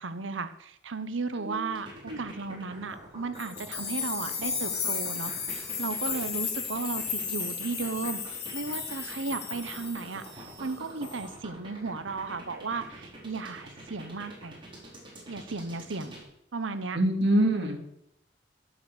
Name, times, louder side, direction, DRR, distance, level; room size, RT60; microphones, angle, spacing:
voice 1, 0.0-14.6 15.3-16.2 16.5-17.0, right 4 dB, 90° right, 11 dB, 1.0 m, -35 dB
sound 1, 1.8-16.2, right 1 dB, 25° right, 4.2 m, -46 dB
sound 2, 3.4-10.7 11.0-11.4, left 6 dB, 60° left, 3.1 m, -34 dB
voice 2, 16.9-17.8, right 1 dB, 65° right, 3 dB, 2.4 m, -25 dB
11.5 x 7.8 x 6.3 m, 0.77 s
head